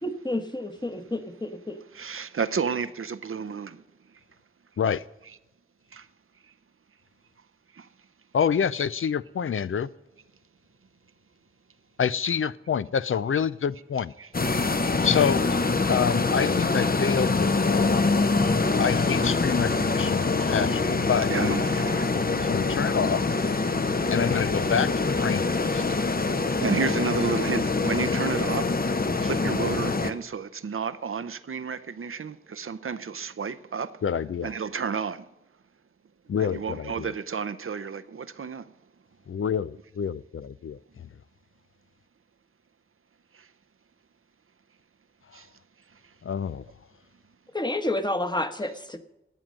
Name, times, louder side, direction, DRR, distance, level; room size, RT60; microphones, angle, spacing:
voice 1, 0.0-1.8 47.5-49.0, left 1 dB, 20° left, 1.1 m, -30 dB
voice 2, 1.9-3.8 5.9-6.1 7.7-7.9 14.2-14.3 20.4-20.5 21.3-22.4 23.0-23.1 25.9-28.8 29.1-34.0 34.4-35.3 36.4-38.7 43.3-43.5 45.3-45.5, right 5 dB, 80° right, 0.6 m, -32 dB
voice 3, 8.3-9.9 12.0-14.1 15.0-15.5 15.9-18.0 18.8-21.7 22.4-23.2 24.1-25.8 34.0-34.5 36.3-37.1 39.3-41.1 46.2-46.7, left 7 dB, 75° left, 0.4 m, -27 dB
sound 1, 14.3-30.1, left 3 dB, 45° left, 0.8 m, -24 dB
13.0 x 9.1 x 7.5 m
wide cardioid pair, 65°, 21 cm